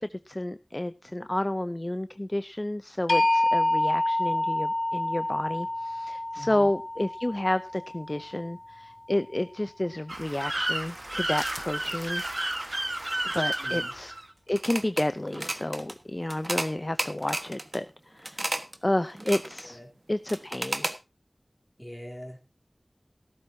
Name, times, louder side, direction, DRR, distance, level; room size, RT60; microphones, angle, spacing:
voice 1, 0.0-12.2 13.3-14.1 14.5-17.9 18.1-18.5 18.8-19.8 20.1-20.9, left 1 dB, 30° left, 12 dB, 0.6 m, -30 dB
sound 1, 3.1-9.1, left 1 dB, 65° left, 2.1 m, -28 dB
voice 2, 6.4-6.7 13.6-13.9 19.6-19.8 21.8-22.5, equal, 10° left, 1 dB, 3.3 m, -42 dB
sound 2, 10.1-15.0 15.3-15.9 16.3-16.7 17.0-17.8 18.2-18.7 19.1-19.7 20.3-20.9, right 1 dB, 40° right, 1.4 m, -32 dB
15.5 x 13.5 x 2.7 m, 0.28 s
wide cardioid pair, 50°, 0 cm